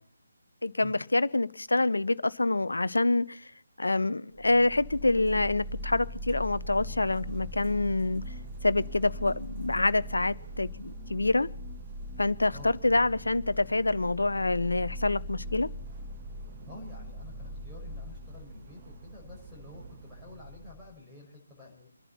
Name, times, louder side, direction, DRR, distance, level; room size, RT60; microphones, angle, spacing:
voice 1, 0.6-3.5 3.8-8.2 8.6-11.5 12.2-15.7, left 2 dB, 70° left, 0.8 m, -26 dB
sound 1, 4.3-20.9, equal, 25° right, 1.5 m, -41 dB
voice 2, 12.5-13.0 16.7-21.9, left 3 dB, 5° right, 5.6 m, -50 dB
26.0 x 11.0 x 4.2 m
figure-of-eight pair, 150°, 0 cm